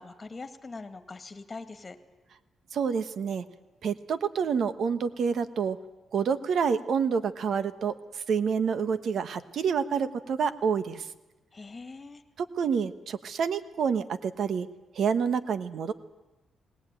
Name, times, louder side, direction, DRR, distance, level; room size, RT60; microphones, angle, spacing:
voice 1, 0.0-2.0 11.5-12.2, left 3 dB, 25° left, 8 dB, 2.1 m, -42 dB
voice 2, 2.7-3.4 3.8-5.8 6.1-11.0 12.4-14.7 14.9-15.9, right 6 dB, 65° right, 12 dB, 1.2 m, -28 dB
20.0 x 19.0 x 9.1 m, 1.1 s
cardioid pair, 115°, 0 cm